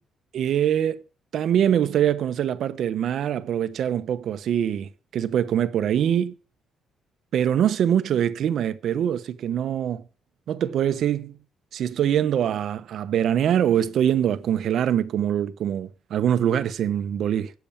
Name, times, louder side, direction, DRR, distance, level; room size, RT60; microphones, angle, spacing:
voice 1, 0.3-1.0 1.3-6.4 7.3-10.0 10.5-11.3 11.7-17.5, right 9 dB, 70° right, 0.9 m, -23 dB
8.6 x 6.9 x 8.6 m
cardioid pair, 90°, 0 cm